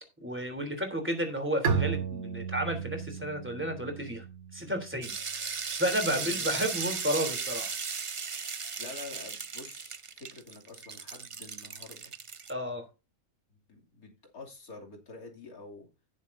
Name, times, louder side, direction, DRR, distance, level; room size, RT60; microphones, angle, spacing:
voice 1, 0.2-4.2 4.5-7.7 12.5-12.8, equal, 10° right, 3.3 m, -32 dB
Bowed string instrument, 1.6-5.2, right 6 dB, 80° right, 2.4 m, -34 dB
sound 1, 5.0-12.5, right 5 dB, 40° right, 0.4 m, -36 dB
voice 2, 6.1-6.5 8.8-12.1 13.5-15.9, left 3 dB, 75° left, 3.3 m, -48 dB
16.5 x 7.3 x 2.7 m
omnidirectional pair, 1.5 m